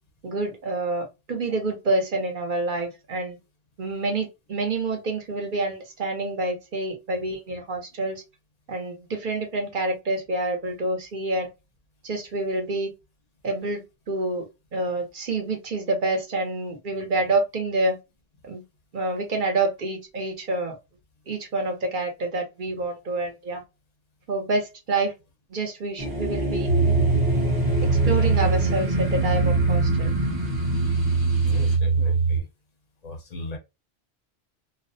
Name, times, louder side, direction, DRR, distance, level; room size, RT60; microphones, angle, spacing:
voice 1, 0.2-3.4 3.8-8.2 8.7-11.5 12.0-12.9 13.4-18.0 18.4-18.6 18.9-20.8 21.3-23.6 24.3-25.1 25.5-26.7 27.8-30.1, right 2 dB, 55° right, 0.9 m, -27 dB
sound 1, 26.0-31.8, equal, 25° right, 0.6 m, -28 dB
sound 2, 26.7-32.4, right 4 dB, 80° right, 1.0 m, -23 dB
voice 2, 31.4-32.5 33.0-33.6, left 2 dB, 45° left, 0.6 m, -37 dB
2.4 x 2.1 x 2.6 m
omnidirectional pair, 1.1 m